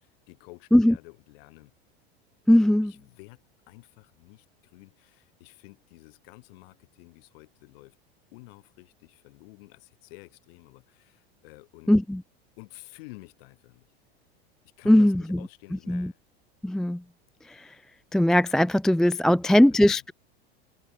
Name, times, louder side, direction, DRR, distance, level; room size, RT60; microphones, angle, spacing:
voice 1, 0.0-1.7 2.8-8.0 8.3-11.9 12.6-13.9 14.8-16.2 19.3-20.0, left 24 dB, 65° left, 6.5 m, -50 dB
voice 2, 2.5-2.9 11.9-12.2 14.9-15.4 15.9-16.1 16.6-17.0 17.5-17.7 18.1-20.1, left 1 dB, ahead, 0.3 m, -20 dB
hypercardioid pair, 95°, 31 cm